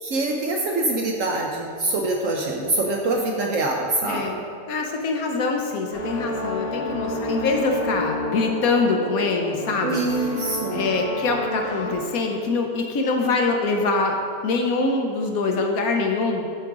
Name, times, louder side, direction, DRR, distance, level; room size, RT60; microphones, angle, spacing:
voice 1, 0.0-4.4 9.8-10.9, right 2 dB, 65° right, 1 dB, 0.8 m, -24 dB
voice 2, 4.0-4.4 4.7-10.0 10.7-14.2 14.4-16.5, left 3 dB, 65° left, 2 dB, 1.0 m, -24 dB
sound 1, 5.9-11.9, left 1 dB, 45° left, 1.1 m, -30 dB
8.4 x 4.9 x 3.6 m, 2.4 s
omnidirectional pair, 1.8 m